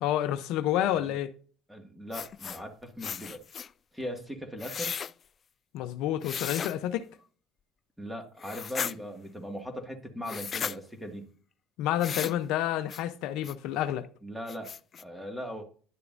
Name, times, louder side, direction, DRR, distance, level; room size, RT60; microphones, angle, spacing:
voice 1, 0.0-1.3 5.7-7.1 11.8-14.1, left 12 dB, 75° left, 0.6 m, -29 dB
voice 2, 1.7-3.4 3.9-4.9 8.0-11.3 14.2-14.7 15.0-15.6, equal, 5° right, 1.9 m, -39 dB
sound 1, 2.1-2.6 3.0-3.7 4.6-5.1 6.2-6.7 8.4-8.9 10.2-10.8 12.0-12.4 12.9-13.0 13.4-13.5 14.0-14.1 14.5-15.0, left 7 dB, 40° left, 0.3 m, -35 dB
11.0 x 6.7 x 2.6 m
supercardioid pair, 95°, 0 cm